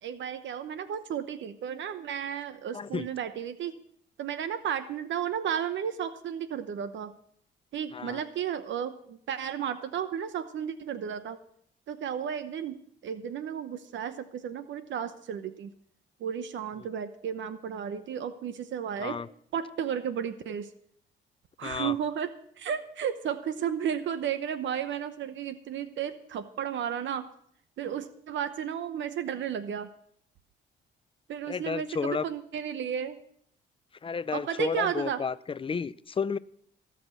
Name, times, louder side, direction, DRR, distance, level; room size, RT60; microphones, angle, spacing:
voice 1, 0.0-3.8 4.2-7.1 7.7-11.4 11.9-15.7 16.2-19.2 19.5-20.7 21.6-27.3 27.8-29.9 31.3-33.2 34.3-35.2, right 8 dB, 70° right, 0.9 m, -33 dB
voice 2, 2.7-3.1 7.9-8.2 19.0-19.3 21.6-21.9 31.5-32.3 34.0-36.4, left 5 dB, 25° left, 0.6 m, -32 dB
18.0 x 6.1 x 8.2 m
cardioid pair, 90°, 20 cm